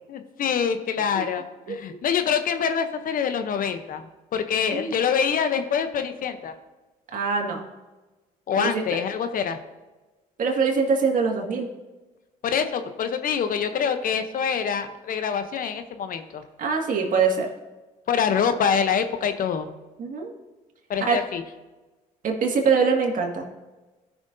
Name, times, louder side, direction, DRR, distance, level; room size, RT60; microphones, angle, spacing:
voice 1, 0.1-4.1 4.3-6.5 8.5-9.6 12.4-16.4 18.1-19.7 20.9-21.4, left 7 dB, 55° left, 9 dB, 0.8 m, -25 dB
voice 2, 7.1-7.6 8.6-8.8 10.4-11.7 16.6-17.5 20.0-20.3 21.1-21.2 22.2-23.4, right 5 dB, 50° right, 1 dB, 2.0 m, -23 dB
15.0 x 6.1 x 2.7 m, 1.2 s
supercardioid pair, 65°, 17 cm